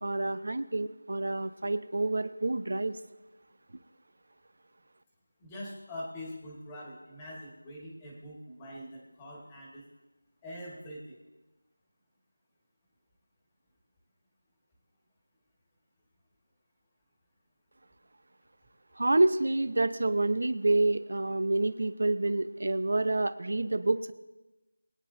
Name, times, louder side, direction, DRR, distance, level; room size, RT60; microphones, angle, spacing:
voice 1, 0.0-3.0 19.0-24.1, right 2 dB, 55° right, 12 dB, 0.9 m, -28 dB
voice 2, 5.4-9.8 10.4-11.2, left 1 dB, 5° left, -5 dB, 1.8 m, -43 dB
22.5 x 9.7 x 2.7 m, 1.1 s
figure-of-eight pair, 175°, 0 cm